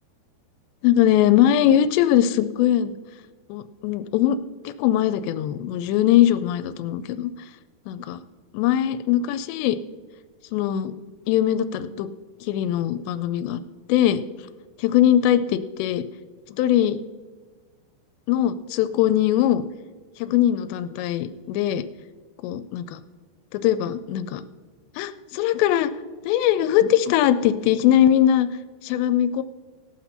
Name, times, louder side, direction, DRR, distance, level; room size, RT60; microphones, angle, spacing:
voice 1, 0.8-2.9 3.5-4.4 4.6-7.3 7.9-8.2 8.5-9.8 10.5-10.9 11.3-12.1 12.4-13.6 13.9-14.2 14.8-16.0 16.5-17.0 18.3-19.6 20.2-21.9 22.4-23.0 23.5-24.4 25.0-25.9 26.2-28.5 28.8-29.4, left 11 dB, 90° left, 11 dB, 2.8 m, -21 dB
17.5 x 5.9 x 5.6 m, 1.4 s
omnidirectional pair, 4.9 m